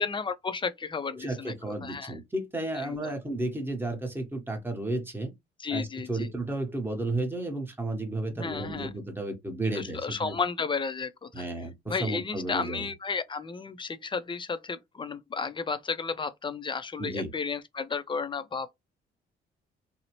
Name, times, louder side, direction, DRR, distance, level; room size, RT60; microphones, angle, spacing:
voice 1, 0.0-2.2 2.7-3.1 5.6-6.3 8.3-8.9 9.7-11.5 11.9-18.7, left 5 dB, 25° left, 0.4 m, -33 dB
voice 2, 1.2-5.3 5.7-10.3 11.3-12.9 17.0-17.3, right 2 dB, 10° right, 1.0 m, -33 dB
2.7 x 2.0 x 2.9 m
cardioid pair, 90°, 20 cm